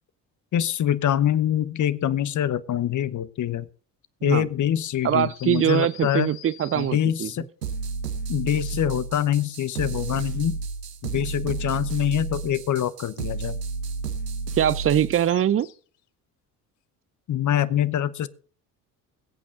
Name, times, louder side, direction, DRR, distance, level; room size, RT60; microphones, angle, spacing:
voice 1, 0.5-3.7 4.2-6.3 6.7-7.5 8.3-10.6 11.0-13.6 17.3-18.3, left 10 dB, 40° left, 0.9 m, -24 dB
sound 1, 5.0-7.3 15.3-16.0, left 14 dB, 75° left, 0.9 m, -47 dB
voice 2, 5.0-7.3 14.6-15.7, right 10 dB, 30° right, 0.6 m, -22 dB
sound 2, 7.6-15.3, right 4 dB, 90° right, 1.1 m, -32 dB
21.5 x 8.6 x 3.9 m
figure-of-eight pair, 55°, 47 cm